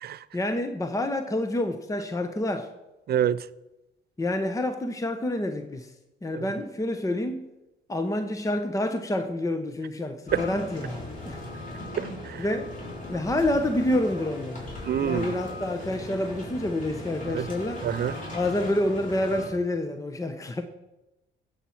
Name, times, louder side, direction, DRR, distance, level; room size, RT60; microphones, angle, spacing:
voice 1, 0.3-2.7 4.2-5.9 6.2-7.4 7.9-11.4 12.4-12.7 13.1-14.7 15.0-17.9 18.3-20.6, left 1 dB, 15° left, 0.9 m, -28 dB
voice 2, 3.1-3.4 6.3-6.5 10.3-10.4 12.0-12.4 14.9-15.3 17.3-17.5 17.8-18.2, right 10 dB, 55° right, 0.5 m, -27 dB
sound 1, 10.3-19.5, left 1 dB, 40° left, 4.4 m, -38 dB
15.5 x 7.2 x 4.6 m
cardioid pair, 90°, 20 cm